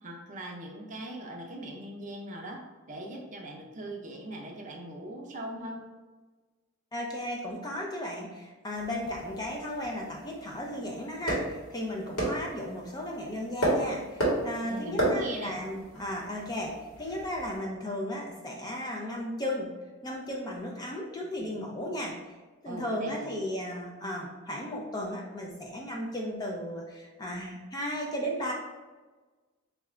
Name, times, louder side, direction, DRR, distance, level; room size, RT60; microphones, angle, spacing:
voice 1, 0.0-2.6 2.9-5.8 12.0-12.2 14.6-15.6 21.2-21.7 22.6-23.3, right 1 dB, 35° right, 0 dB, 0.6 m, -40 dB
voice 2, 6.9-19.7 20.0-22.3 22.6-28.5, left 1 dB, 20° left, -1 dB, 0.4 m, -35 dB
sound 1, 8.7-17.6, right 1 dB, 80° left, 1.4 m, -34 dB
4.6 x 2.4 x 3.2 m, 1.3 s
head